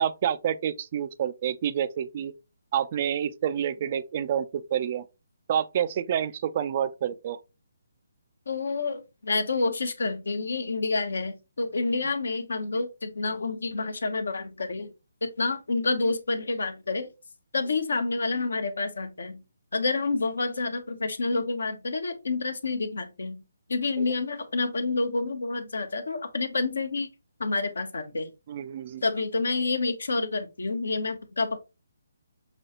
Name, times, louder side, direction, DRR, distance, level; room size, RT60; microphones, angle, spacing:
voice 1, 0.0-2.3 2.7-5.0 5.5-7.4 24.0-24.1 28.5-29.0, right 9 dB, 35° right, 0.4 m, -28 dB
voice 2, 8.5-14.9 15.2-17.1 17.5-19.4 19.7-23.4 23.7-27.1 27.4-28.3 29.0-31.6, left 3 dB, 65° left, 0.8 m, -28 dB
6.0 x 2.3 x 2.9 m
figure-of-eight pair, 140°, 0 cm